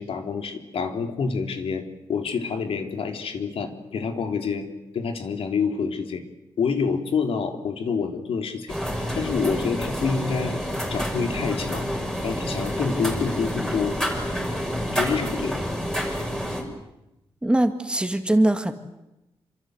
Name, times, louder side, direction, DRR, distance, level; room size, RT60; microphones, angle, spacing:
voice 1, 0.0-4.7 4.9-6.2 6.6-8.8 9.1-10.6 10.9-11.9 12.2-14.0 14.9-15.6, left 5 dB, 75° left, 5 dB, 3.5 m, -27 dB
sound 1, 8.7-16.6, equal, 5° left, 5.9 m, -28 dB
voice 2, 17.4-18.7, right 1 dB, 10° right, 7 dB, 2.0 m, -21 dB
27.5 x 26.5 x 8.0 m, 0.91 s
wide cardioid pair, 140°, 10 cm